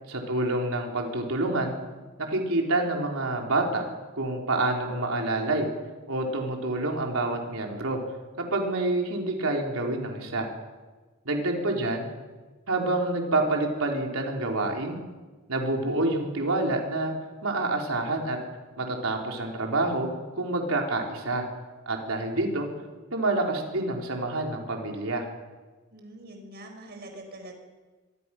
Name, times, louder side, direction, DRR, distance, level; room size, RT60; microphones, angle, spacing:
voice 1, 0.1-1.8 2.2-3.8 4.1-5.7 6.1-8.0 8.4-10.5 11.2-12.1 12.7-15.0 15.5-17.1 17.4-18.4 18.8-21.4 21.9-22.7 23.1-25.3, right 2 dB, 85° right, 1 dB, 4.0 m, -27 dB
voice 2, 25.9-27.5, right 1 dB, 50° right, 4 dB, 5.5 m, -45 dB
25.0 x 22.5 x 6.1 m, 1.3 s
head